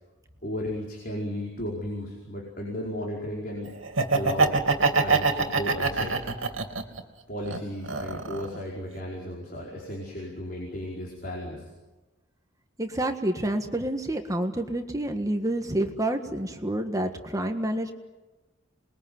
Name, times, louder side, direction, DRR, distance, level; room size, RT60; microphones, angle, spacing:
voice 1, 0.4-3.7 4.1-4.6 4.9-6.2 7.3-11.7, equal, 45° left, -3 dB, 4.9 m, -34 dB
Laughter, 3.8-7.0 7.4-8.6, right 3 dB, 80° right, 2.7 m, -24 dB
voice 2, 12.8-17.9, right 1 dB, 15° right, 5 dB, 1.6 m, -28 dB
27.5 x 21.5 x 9.6 m, 1.2 s
head